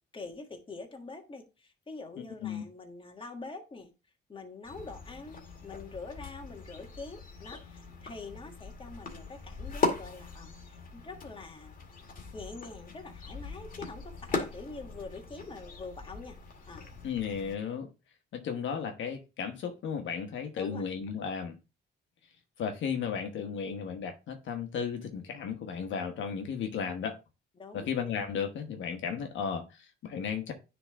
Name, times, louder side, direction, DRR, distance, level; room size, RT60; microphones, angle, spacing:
voice 1, 0.1-3.9 4.3-11.8 12.3-16.4 16.7-16.9 20.6-20.8 27.6-27.9, left 3 dB, 25° left, 1.7 m, -45 dB
sound 1, 4.6-17.5, left 3 dB, 45° left, 2.0 m, -39 dB
voice 2, 17.0-17.9 18.3-21.6 22.6-27.2 27.7-30.5, left 6 dB, 75° left, 1.2 m, -34 dB
9.7 x 3.5 x 3.6 m
cardioid pair, 90°, 20 cm